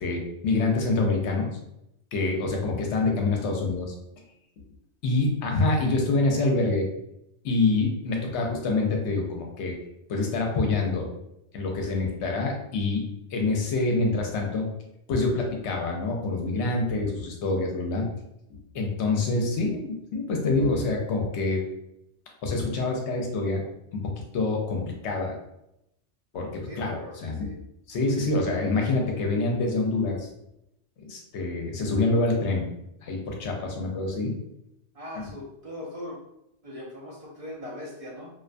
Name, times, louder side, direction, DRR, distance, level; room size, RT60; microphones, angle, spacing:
voice 1, 0.0-1.5 2.1-3.9 5.0-6.9 7.4-9.8 10.1-11.1 11.5-13.0 13.3-14.7 15.1-18.1 18.5-21.6 22.4-23.6 23.9-25.3 26.3-27.5 27.9-30.3 31.1-32.6 33.0-34.4 35.2-35.3, left 3 dB, 70° left, 1 dB, 0.8 m, -26 dB
voice 2, 26.7-27.6 34.9-36.2 36.6-38.3, left 1 dB, 55° right, -5 dB, 0.4 m, -40 dB
2.3 x 2.2 x 2.4 m, 0.83 s
omnidirectional pair, 1.2 m